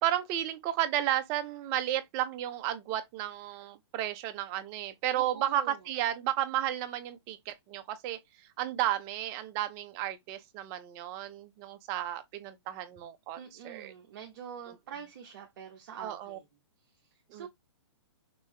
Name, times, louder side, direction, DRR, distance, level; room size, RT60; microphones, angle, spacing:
voice 1, 0.0-13.4 13.6-13.9 14.7-14.8 16.0-16.4 17.3-17.5, right 12 dB, 20° right, 0.5 m, -33 dB
voice 2, 5.1-5.8 13.4-16.4 17.3-17.5, right 7 dB, 40° right, 1.1 m, -45 dB
6.0 x 2.7 x 3.2 m
hypercardioid pair, 165°, 15 cm